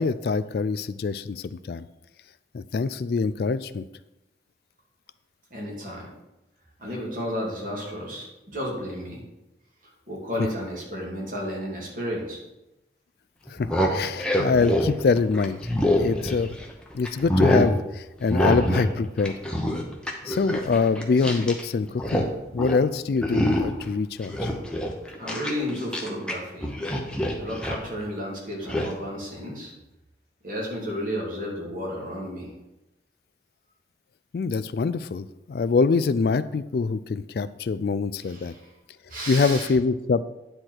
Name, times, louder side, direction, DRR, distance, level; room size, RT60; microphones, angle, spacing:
voice 1, 0.0-1.9 2.5-3.8 13.5-15.6 15.9-16.6 16.9-19.4 20.2-22.3 22.5-24.5 34.3-38.5 39.3-40.2, left 4 dB, 55° left, 14 dB, 0.3 m, -24 dB
voice 2, 5.5-6.1 6.8-9.2 10.1-12.4 25.2-26.7 27.4-29.7 30.4-32.5 38.2-38.7 39.1-39.7, equal, 45° right, -3 dB, 2.7 m, -32 dB
sound 1, 13.5-16.7 17.0-17.7 18.3-18.9 19.2-21.6 21.9-22.3 22.6-22.8 23.2-23.8 24.2-26.3 26.6-27.9 28.7-28.9, equal, 5° left, 0.9 m, -25 dB
9.7 x 4.5 x 6.4 m, 0.96 s
head